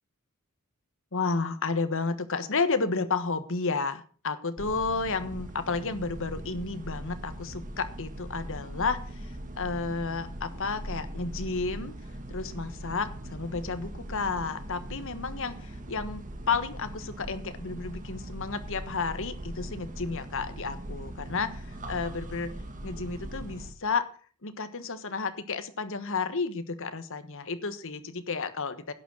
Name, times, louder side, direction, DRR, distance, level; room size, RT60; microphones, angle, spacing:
voice 1, 1.1-11.9 12.3-24.1 24.4-28.9, left 4 dB, 65° left, 11 dB, 1.4 m, -32 dB
sound 1, 4.6-23.7, right 1 dB, 35° right, 1.8 m, -40 dB
11.5 x 9.1 x 6.2 m, 0.40 s
head